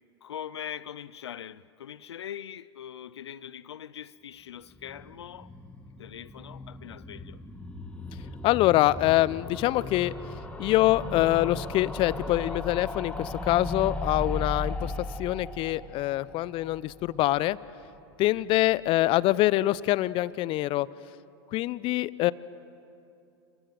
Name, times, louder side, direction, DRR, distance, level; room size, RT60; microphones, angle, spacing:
voice 1, 0.2-5.5 6.0-7.4 18.3-18.4, left 10 dB, 80° left, 0.5 m, -42 dB
sound 1, 4.6-17.7 17.9-18.0 18.2-18.3 18.5-18.6, left 2 dB, 10° left, 1.9 m, -37 dB
voice 2, 8.4-10.1 10.6-14.9 15.2-17.6 18.2-20.9 21.5-22.3, left 16 dB, 40° left, 0.6 m, -25 dB
27.5 x 15.5 x 9.3 m
hypercardioid pair, 100°, 14 cm